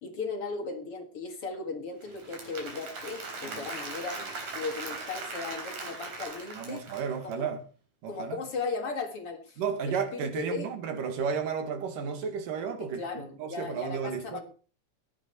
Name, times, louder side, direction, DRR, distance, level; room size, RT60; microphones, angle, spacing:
voice 1, 0.0-4.3 4.5-6.8 7.2-7.5 8.1-10.7 12.8-14.4, left 4 dB, 50° left, 2.5 m, -37 dB
Applause / Crowd, 2.0-7.3, right 3 dB, 60° right, 5.0 m, -39 dB
voice 2, 6.6-7.6 8.0-8.4 9.6-13.0 13.4-14.4, right 6 dB, 80° right, 3.5 m, -33 dB
15.5 x 11.0 x 4.5 m
omnidirectional pair, 3.8 m